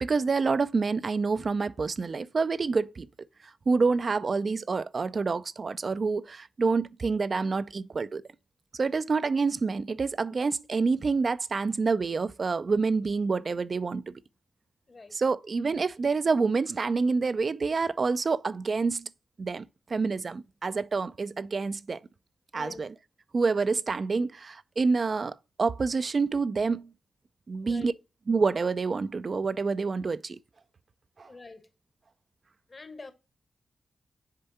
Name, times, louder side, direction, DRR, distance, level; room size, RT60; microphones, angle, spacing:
voice 1, 0.0-3.1 3.7-8.2 8.7-14.1 15.1-19.1 19.4-22.0 22.5-22.9 23.3-26.9 27.5-27.9 28.3-30.4 31.2-31.3, right 4 dB, 55° right, 0.4 m, -27 dB
voice 2, 22.5-22.8 27.6-27.9 31.3-31.7 32.7-33.1, left 3 dB, 45° left, 1.2 m, -45 dB
6.7 x 3.5 x 4.1 m
supercardioid pair, 45°, 0 cm